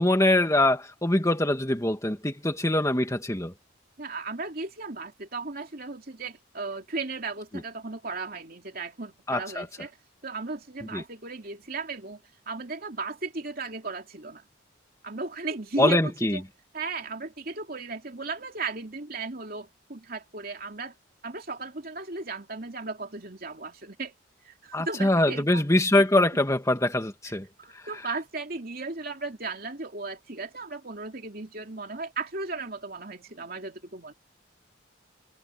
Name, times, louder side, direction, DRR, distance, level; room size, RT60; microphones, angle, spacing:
voice 1, 0.0-3.5 9.3-9.7 10.9-11.0 15.8-16.4 24.7-27.5, left 1 dB, 15° left, 2.1 m, -23 dB
voice 2, 4.0-10.0 10.2-14.4 15.0-16.4 16.7-20.9 21.2-24.1 24.4-25.6 27.6-34.1, right 3 dB, 50° right, 3.0 m, -36 dB
head